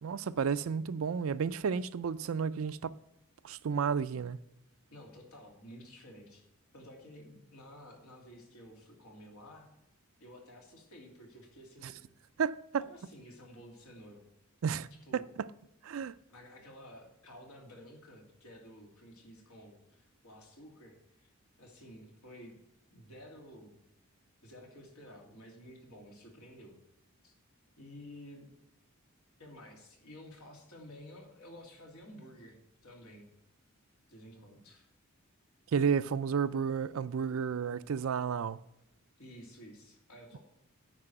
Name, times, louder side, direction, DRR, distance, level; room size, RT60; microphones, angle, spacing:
voice 1, 0.0-2.9 3.4-4.4 11.8-11.9 12.4-12.9 14.6-15.5 15.8-16.1 35.7-38.6, right 6 dB, 70° right, 0.4 m, -32 dB
voice 2, 4.9-6.4 6.7-9.7 10.2-12.0 12.8-14.2 15.1-15.3 16.3-21.3 21.6-22.6 22.9-23.7 24.4-26.7 27.2-27.3 27.8-28.5 29.4-32.6 32.8-33.3 34.1-34.9 39.2-40.4, equal, 85° left, 2.8 m, -52 dB
9.6 x 4.9 x 7.7 m
head